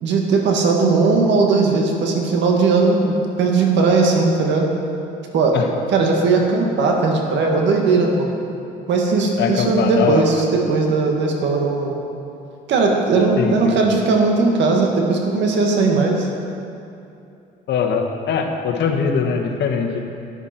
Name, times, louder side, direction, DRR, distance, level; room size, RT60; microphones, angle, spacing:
voice 1, 0.0-4.7 5.3-5.6 5.9-8.3 8.9-11.9 12.7-16.3, right 3 dB, 70° right, 1 dB, 1.8 m, -18 dB
voice 2, 9.4-10.2 13.4-13.8 17.7-20.1, left 6 dB, 65° left, 3 dB, 1.3 m, -21 dB
11.0 x 10.5 x 4.4 m, 2.7 s
supercardioid pair, 85°, 19 cm